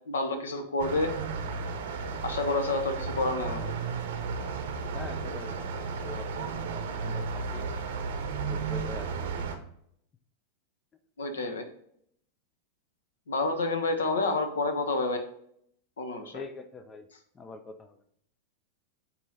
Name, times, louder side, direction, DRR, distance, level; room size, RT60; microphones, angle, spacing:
voice 1, 0.1-1.1 2.2-3.7 11.2-11.7 13.3-15.2 16.0-16.4, left 3 dB, 65° left, 7 dB, 0.9 m, -29 dB
sound 1, 0.8-9.6, right 5 dB, 60° right, 0.8 m, -34 dB
voice 2, 4.9-5.7 6.0-6.7 7.0-7.7 8.4-9.3 11.4-11.5 16.3-17.1 17.3-18.0, left 3 dB, 20° left, 9 dB, 0.4 m, -44 dB
8.1 x 2.9 x 3.9 m, 0.70 s
figure-of-eight pair, 90°, 0 cm